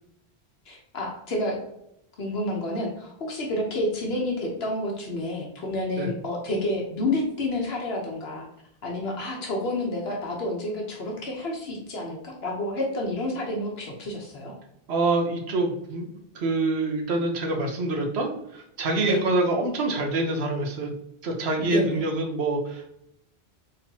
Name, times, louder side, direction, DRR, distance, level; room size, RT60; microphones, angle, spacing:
voice 1, 0.7-1.6 2.2-8.5 8.8-14.5 19.0-19.2 21.6-22.1, left 1 dB, 75° left, -1 dB, 1.1 m, -29 dB
voice 2, 14.9-16.1 16.3-20.9 21.2-22.9, right 2 dB, 85° right, 3 dB, 1.1 m, -26 dB
4.2 x 3.8 x 2.8 m, 0.79 s
omnidirectional pair, 1.1 m